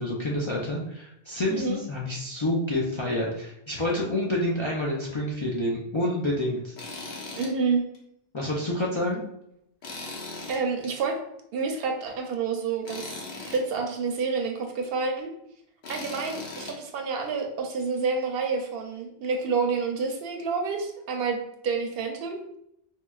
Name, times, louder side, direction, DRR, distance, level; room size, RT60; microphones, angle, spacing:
voice 1, 0.0-6.7 8.3-9.2, left 1 dB, 45° left, -4 dB, 0.4 m, -28 dB
Tools, 6.8-7.5 7.9-8.0 9.8-10.9 12.9-13.6 15.8-16.8, left 3 dB, 70° left, 0.9 m, -38 dB
voice 2, 7.4-7.8 10.5-11.2 11.5-13.2 13.5-15.3 15.9-22.4, right 4 dB, 70° right, 3 dB, 0.7 m, -28 dB
4.4 x 2.1 x 2.3 m, 0.77 s
omnidirectional pair, 1.0 m